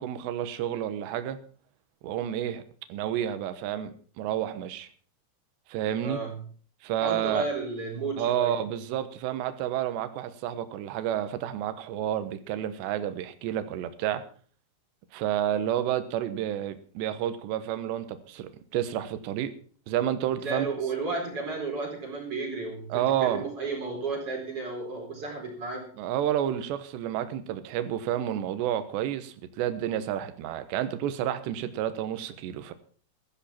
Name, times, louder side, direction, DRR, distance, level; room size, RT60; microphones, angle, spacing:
voice 1, 0.0-1.4 2.0-2.6 2.9-4.9 5.7-6.2 6.8-7.5 8.2-14.2 15.1-19.5 19.9-20.7 22.9-23.4 26.0-32.7, right 11 dB, 70° right, 11 dB, 3.0 m, -30 dB
voice 2, 6.0-6.3 7.0-8.6 20.4-25.8, right 3 dB, 30° right, 0 dB, 4.7 m, -33 dB
15.5 x 14.0 x 4.3 m, 0.44 s
omnidirectional pair, 5.7 m